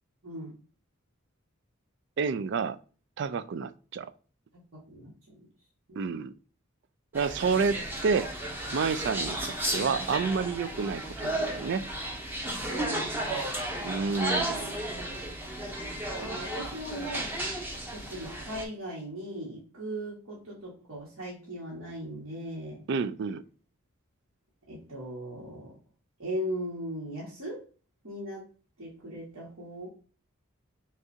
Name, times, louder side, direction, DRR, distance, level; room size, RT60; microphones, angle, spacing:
voice 1, 0.2-0.5 4.7-5.5 5.9-6.1 12.7-13.8 16.2-22.8 24.7-25.8 26.2-27.6 28.0-28.5 28.8-29.9, equal, 75° right, -7 dB, 1.6 m, -39 dB
voice 2, 2.2-2.8 3.2-4.1 6.0-6.3 7.1-8.3 8.7-11.8 13.8-14.7 22.9-23.4, right 5 dB, 55° right, 14 dB, 0.3 m, -29 dB
sound 1, 7.1-18.6, right 1 dB, 10° right, 0.7 m, -34 dB
6.4 x 2.4 x 2.7 m, 0.38 s
head